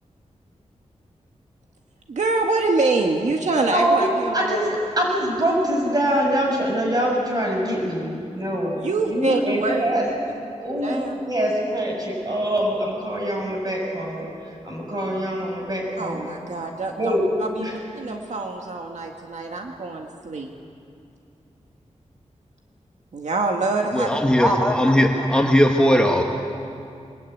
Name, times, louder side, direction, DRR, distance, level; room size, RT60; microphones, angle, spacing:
voice 1, 2.1-4.8 8.8-9.8 10.8-11.1 16.0-20.5 23.1-24.5, right 3 dB, 75° right, 2 dB, 1.8 m, -25 dB
voice 2, 3.7-4.1 4.3-4.7 5.0-8.8 9.1-10.1 10.6-14.3 14.6-16.3 17.0-17.2 17.6-17.7, equal, 35° right, -1 dB, 6.6 m, -24 dB
voice 3, 23.9-26.2, equal, 10° left, 1 dB, 1.6 m, -18 dB
23.5 x 20.5 x 9.4 m, 2.5 s
wide cardioid pair, 135°, 12 cm